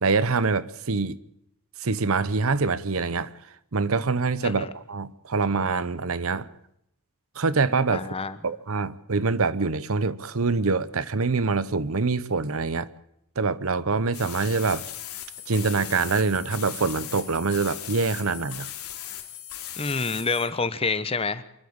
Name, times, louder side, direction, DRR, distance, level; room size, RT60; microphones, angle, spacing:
voice 1, 0.0-1.2 1.8-3.3 3.7-6.5 7.4-8.1 8.4-12.9 13.4-14.8 15.5-18.7, right 4 dB, 70° right, 0.8 m, -25 dB
voice 2, 7.9-8.4 19.8-21.4, left 4 dB, 25° left, 1.0 m, -27 dB
sound 1, 14.1-20.5, left 11 dB, 85° left, 3.2 m, -38 dB
25.5 x 12.0 x 8.7 m
head